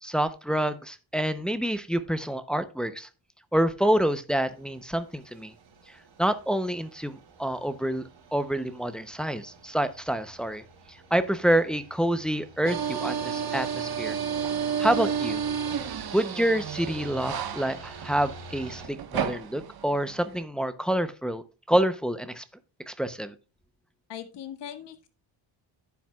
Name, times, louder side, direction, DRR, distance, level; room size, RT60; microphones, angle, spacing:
voice 1, 0.0-3.1 3.5-5.5 5.9-10.6 10.9-14.2 14.8-15.4 16.1-22.4 22.9-23.3, right 1 dB, ahead, 10 dB, 0.6 m, -27 dB
sound 1, 4.4-18.9, right 3 dB, 75° right, 4.1 m, -49 dB
sound 2, 12.7-20.4, right 7 dB, 50° right, 1.2 m, -31 dB
voice 2, 24.1-25.1, left 9 dB, 65° left, 9 dB, 1.7 m, -40 dB
12.0 x 9.1 x 2.3 m, 0.31 s
cardioid pair, 135°, 46 cm